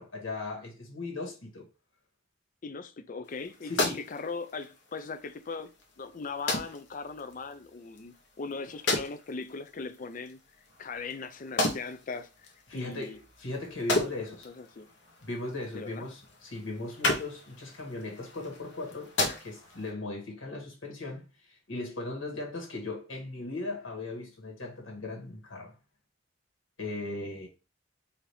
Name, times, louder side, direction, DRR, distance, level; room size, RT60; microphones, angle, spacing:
voice 1, 0.0-1.7 3.7-4.0 12.7-14.5 15.2-19.1 19.4-25.7 26.8-27.5, left 2 dB, 85° left, 1.8 m, -38 dB
voice 2, 2.6-10.4 10.8-13.2 14.4-14.9 15.7-16.1, left 4 dB, 45° left, 0.5 m, -39 dB
sound 1, 3.2-19.9, left 2 dB, 65° left, 1.2 m, -36 dB
4.9 x 2.7 x 3.3 m
head